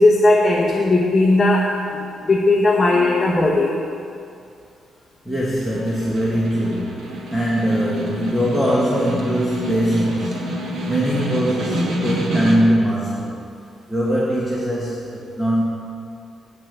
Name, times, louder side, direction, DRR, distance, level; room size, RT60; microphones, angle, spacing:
voice 1, 0.0-3.7, left 2 dB, 20° left, -3 dB, 0.9 m, -17 dB
voice 2, 5.2-13.3 13.9-15.6, equal, 5° right, -6 dB, 1.3 m, -21 dB
Snare drum, 5.4-12.9, equal, 70° right, 1.4 m, -28 dB
8.6 x 5.7 x 7.9 m, 2.4 s
cardioid pair, 150°, 0 cm